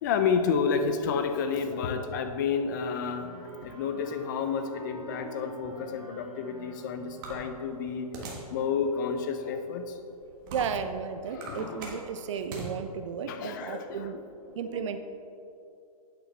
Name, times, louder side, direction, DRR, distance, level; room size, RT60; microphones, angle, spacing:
voice 1, 0.0-3.3 3.6-8.1 8.5-9.9 11.3-11.9 13.3-14.2, left 6 dB, 30° left, 7 dB, 0.5 m, -30 dB
Wind instrument woodwind instrument, 2.6-8.0, right 1 dB, 75° right, 1.9 m, -48 dB
sound 1, 7.2-8.5 9.1-9.2 9.9-10.9 11.3-12.7, right 3 dB, 35° right, 1.4 m, -41 dB
voice 2, 10.5-14.2 14.5-15.0, right 6 dB, 55° right, 8 dB, 0.5 m, -34 dB
8.9 x 7.3 x 3.3 m, 2.7 s
hypercardioid pair, 155°, 19 cm